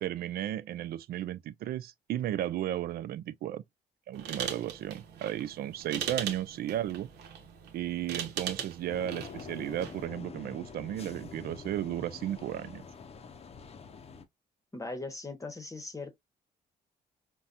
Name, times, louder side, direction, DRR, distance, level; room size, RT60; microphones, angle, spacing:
voice 1, 0.0-3.6 4.1-7.1 7.7-12.8, right 12 dB, 65° right, 0.4 m, -34 dB
sound 1, 4.1-10.1, right 8 dB, 80° right, 0.8 m, -40 dB
sound 2, 8.9-14.3, left 5 dB, 35° left, 0.6 m, -46 dB
voice 2, 14.7-16.1, left 2 dB, 20° left, 0.9 m, -39 dB
4.0 x 2.2 x 2.4 m
supercardioid pair, 70°, 17 cm